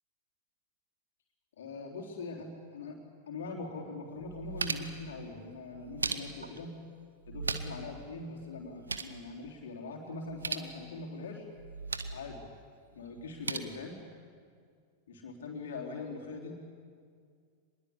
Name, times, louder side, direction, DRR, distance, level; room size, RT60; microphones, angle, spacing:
voice 1, 1.6-3.0 3.3-6.7 7.3-11.5 12.1-12.5 12.9-14.0 15.1-16.5, left 3 dB, 60° left, 0 dB, 3.6 m, -42 dB
sound 1, 3.6-3.7 4.1-5.0 5.7-6.6 7.2-7.9 8.2-8.3 8.6-9.2 10.2-10.7 11.6-12.2 13.2-13.6, right 4 dB, 75° right, 1.3 m, -37 dB
25.0 x 21.0 x 8.4 m, 2.1 s
figure-of-eight pair, 90°, 0 cm